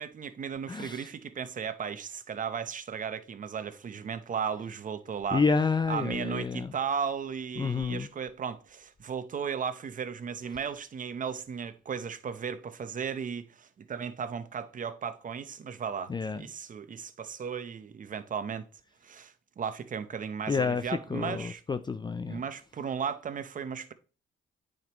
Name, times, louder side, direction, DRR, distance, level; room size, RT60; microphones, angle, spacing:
voice 1, 0.0-5.4 5.9-18.7 19.0-21.6 22.3-23.9, right 7 dB, 40° right, 0.8 m, -35 dB
voice 2, 0.7-1.1 5.3-6.7 7.6-8.1 16.1-16.4 20.5-20.8 21.1-22.4, left 5 dB, 20° left, 0.5 m, -29 dB
9.2 x 5.1 x 3.0 m
cardioid pair, 90°, 20 cm